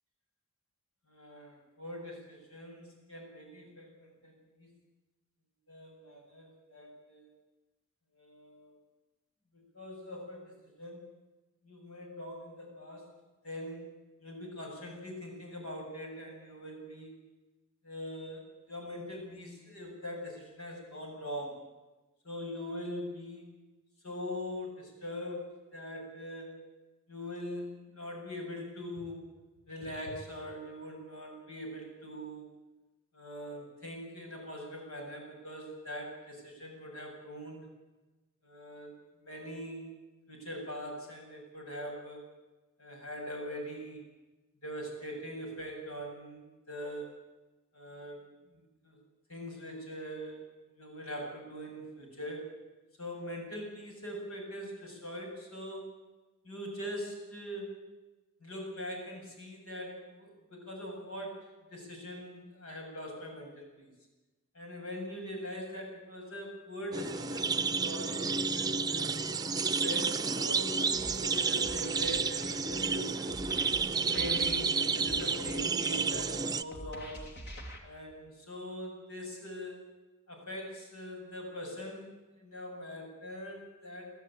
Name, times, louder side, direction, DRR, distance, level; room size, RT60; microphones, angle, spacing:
voice 1, 1.1-4.7 5.7-7.3 8.1-8.7 9.5-11.1 11.6-13.1 13.4-17.1 17.8-21.6 22.2-23.5 24.0-26.5 27.1-29.3 29.7-32.5 33.1-37.7 38.4-38.9 39.2-39.9 40.3-42.2 42.8-44.0 44.6-47.2 47.7-49.0 49.3-50.5 50.8-52.5 53.0-55.9 56.4-57.8 58.4-63.9 64.5-68.2 68.5-69.1 69.6-73.3 74.1-77.2 77.8-79.9 80.3-84.1, equal, 90° left, 1 dB, 7.5 m, -42 dB
sound 1, 66.9-76.6, right 5 dB, 20° right, 0.7 m, -31 dB
sound 2, 70.9-77.8, equal, 55° left, 3.0 m, -46 dB
25.5 x 14.0 x 9.0 m, 1.2 s
head